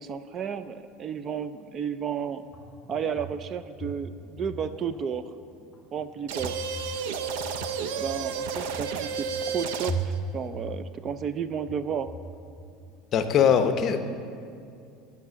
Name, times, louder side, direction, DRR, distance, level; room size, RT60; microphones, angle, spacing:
voice 1, 0.0-2.4 2.9-5.3 5.9-6.5 8.0-12.1, right 7 dB, 30° right, 13 dB, 0.3 m, -32 dB
sound 1, 2.4-13.4, right 2 dB, 20° left, 2.0 m, -39 dB
sound 2, 6.3-10.2, right 6 dB, 80° right, 0.5 m, -32 dB
voice 2, 13.1-14.0, left 7 dB, 35° left, 8 dB, 0.7 m, -21 dB
10.5 x 5.8 x 7.3 m, 2.4 s
supercardioid pair, 145°, 0 cm